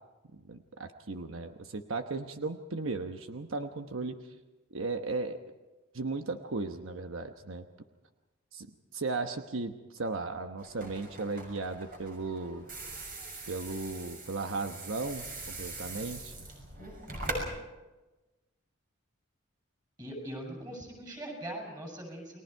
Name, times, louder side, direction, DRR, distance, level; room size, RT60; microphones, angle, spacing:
voice 1, 0.3-4.3 4.7-5.4 5.9-7.6 8.5-8.7 8.9-12.7 13.5-16.5, right 3 dB, 80° right, 6 dB, 1.0 m, -36 dB
sound 1, 10.6-17.4, right 2 dB, 45° right, 6.3 m, -42 dB
voice 2, 20.0-22.4, right 1 dB, 20° right, 0 dB, 7.3 m, -41 dB
30.0 x 21.0 x 4.6 m, 1.1 s
head